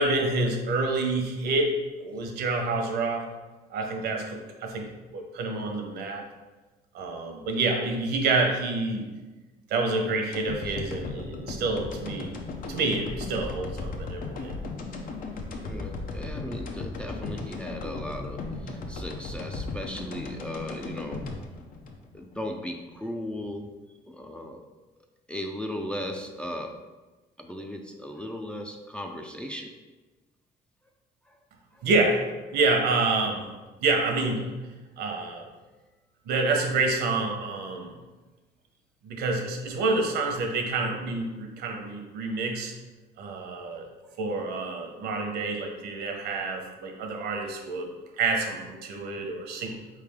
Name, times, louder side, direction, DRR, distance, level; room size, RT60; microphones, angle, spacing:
voice 1, 0.0-3.3 3.7-4.9 5.1-6.2 6.9-9.0 9.7-12.3 12.7-14.6 31.8-32.2 32.5-33.5 33.8-34.5 35.0-35.5 36.3-38.0 39.0-42.7 43.2-43.8 44.2-47.9 48.2-49.8, right 3 dB, 75° right, 2 dB, 0.9 m, -28 dB
sound 1, 10.3-22.6 22.9-23.0, left 3 dB, 55° left, 0.7 m, -36 dB
voice 2, 15.6-21.3 22.1-23.7 24.1-24.6 25.3-26.8 27.4-29.8 31.3-31.4 31.7-31.9 43.7-44.2, left 1 dB, 5° left, 2 dB, 0.4 m, -37 dB
4.5 x 3.3 x 3.5 m, 1.2 s
cardioid pair, 110°, 17 cm